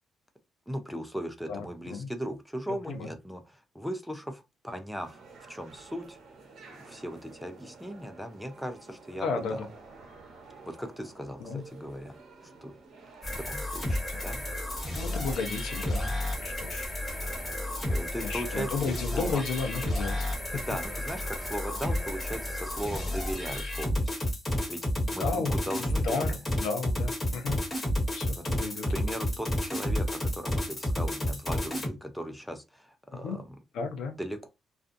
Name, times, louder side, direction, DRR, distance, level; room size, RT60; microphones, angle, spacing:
voice 1, 0.7-5.2 5.5-6.2 6.8-9.6 10.7-12.2 12.6-12.7 13.4-14.4 17.8-19.4 20.5-24.1 24.7-24.8 25.1-26.4 28.4-33.6 34.2-34.5, equal, ahead, 0.5 m, -38 dB
voice 2, 1.5-2.1 2.9-3.1 9.2-9.7 11.4-11.6 13.3-13.4 14.9-16.1 16.4-17.0 18.2-20.3 25.2-25.5 26.0-27.6 28.1-28.9 33.1-33.4 33.7-34.2, left 4 dB, 80° left, 0.6 m, -33 dB
sound 1, 5.0-23.6, right 4 dB, 65° right, 0.9 m, -49 dB
sound 2, 13.2-31.9, left 1 dB, 30° left, 1.2 m, -31 dB
2.5 x 2.3 x 2.5 m
cardioid pair, 90°, 0 cm